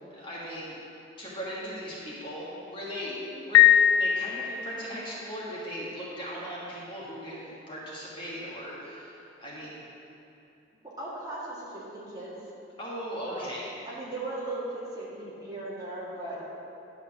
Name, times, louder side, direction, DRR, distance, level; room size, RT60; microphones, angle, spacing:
voice 1, 0.1-0.8 1.2-3.1 3.4-3.7 4.0-9.8 12.8-13.7, equal, 25° left, -7 dB, 1.5 m, -38 dB
voice 2, 3.1-3.4 11.0-12.3 13.3-13.6 13.8-16.4, right 2 dB, 20° right, -8 dB, 2.0 m, -38 dB
Piano, 3.5-5.0, left 11 dB, 85° left, 0.3 m, -20 dB
10.5 x 4.3 x 7.2 m, 2.8 s
head